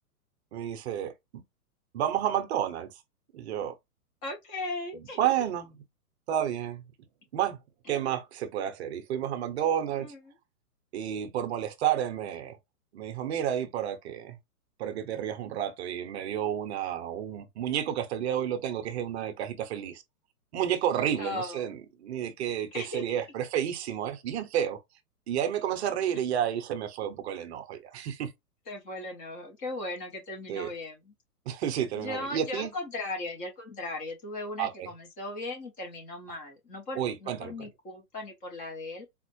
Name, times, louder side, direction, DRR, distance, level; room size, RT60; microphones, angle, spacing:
voice 1, 0.5-1.4 1.9-2.9 3.3-3.7 5.2-5.8 6.3-6.8 7.3-7.6 7.9-10.1 10.9-12.6 12.9-14.4 14.8-20.0 20.5-24.8 25.3-28.3 30.5-30.7 31.5-32.7 34.6-34.9 36.9-37.7, right 10 dB, 45° right, 0.7 m, -31 dB
voice 2, 4.2-5.3 7.9-8.0 9.9-10.2 21.2-21.7 22.7-23.2 28.7-31.1 31.9-39.0, left 2 dB, 15° left, 0.6 m, -38 dB
4.2 x 2.0 x 3.0 m
hypercardioid pair, 125°, 47 cm